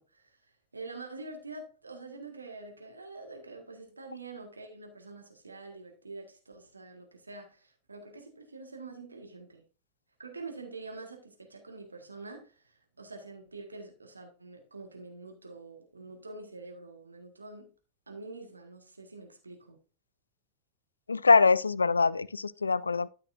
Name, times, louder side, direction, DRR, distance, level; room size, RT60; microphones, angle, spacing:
voice 1, 0.0-9.6 10.2-17.7 18.1-19.8, right 3 dB, 80° right, 1.7 m, -46 dB
voice 2, 21.1-23.1, left 4 dB, 75° left, 0.3 m, -23 dB
12.5 x 6.0 x 2.6 m
figure-of-eight pair, 90°, 0 cm